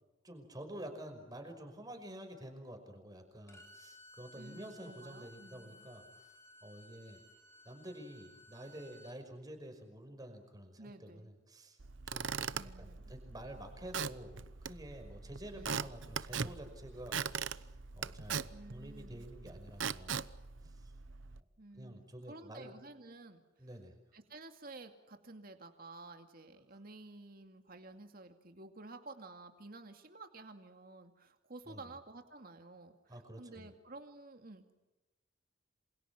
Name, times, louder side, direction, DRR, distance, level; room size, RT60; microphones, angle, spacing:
voice 1, 0.2-6.3 6.6-7.2 7.7-11.8 12.0-12.5 12.8-17.6 17.9-20.2 20.6-20.9 21.8-22.7 23.6-23.9 31.7-31.8 33.1-33.7, right 1 dB, 20° right, 5 dB, 5.7 m, -49 dB
Bowed string instrument, 3.5-9.2, left 1 dB, 15° left, 4.2 m, -58 dB
voice 2, 4.4-5.9 10.8-11.3 12.5-13.1 15.5-15.9 18.5-19.3 21.6-23.4 24.1-34.7, right 2 dB, 50° right, 6 dB, 2.4 m, -52 dB
Squeak / Wood, 11.8-21.4, right 6 dB, 90° right, 0.9 m, -41 dB
28.0 x 27.0 x 6.1 m, 1.1 s
head